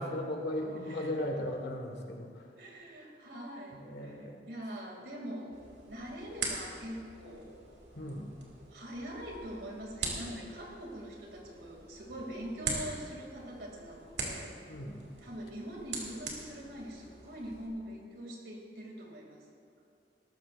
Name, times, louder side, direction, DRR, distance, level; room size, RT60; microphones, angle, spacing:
voice 1, 0.0-2.4 3.8-4.4 7.9-8.3 14.7-15.0, left 1 dB, 70° left, 2 dB, 1.8 m, -37 dB
voice 2, 2.6-5.6 5.9-7.6 8.7-14.5 15.2-19.4, equal, 70° right, -1 dB, 2.7 m, -43 dB
sound 1, 5.5-17.7, right 3 dB, 85° right, 2.5 m, -43 dB
19.0 x 14.0 x 2.6 m, 2.3 s
head